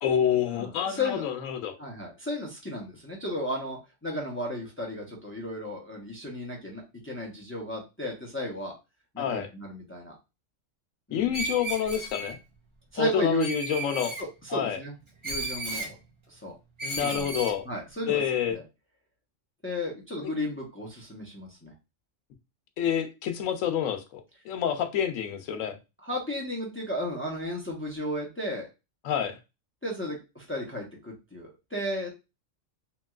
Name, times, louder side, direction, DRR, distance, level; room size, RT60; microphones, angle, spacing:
voice 1, 0.0-1.8 9.2-9.5 11.1-12.4 13.0-14.2 14.5-14.8 16.8-17.7 18.1-18.6 20.2-20.3 22.8-25.8 29.0-29.4, left 9 dB, 90° left, 1.0 m, -28 dB
voice 2, 0.5-1.2 1.8-8.7 9.1-10.2 11.1-11.4 12.9-13.5 14.2-15.0 15.2-16.0 16.3-16.5 16.9-17.3 17.6-18.2 18.5-18.6 19.6-21.7 26.0-28.7 29.8-32.1, left 1 dB, 15° left, 0.6 m, -34 dB
Screech, 11.3-12.3 13.4-14.2 15.2-15.9 16.8-17.6, right 2 dB, 30° right, 0.7 m, -34 dB
3.0 x 2.8 x 2.3 m
omnidirectional pair, 1.3 m